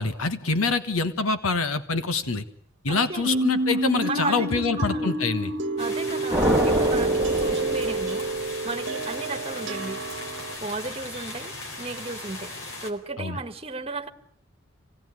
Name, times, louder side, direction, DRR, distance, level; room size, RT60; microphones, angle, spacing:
voice 1, 0.0-2.4 2.8-5.5 13.2-13.4, left 3 dB, 90° left, 10 dB, 1.4 m, -25 dB
voice 2, 2.9-3.4 4.0-5.2 5.8-10.0 10.6-12.5 12.8-14.1, right 3 dB, 25° right, 6 dB, 1.5 m, -34 dB
sound 1, 3.2-10.6, right 2 dB, 60° right, 1.2 m, -28 dB
sound 2, 5.8-12.9, left 2 dB, 65° left, 4.2 m, -38 dB
sound 3, 6.3-8.5, equal, 5° right, 1.5 m, -27 dB
26.5 x 18.0 x 9.7 m, 0.72 s
head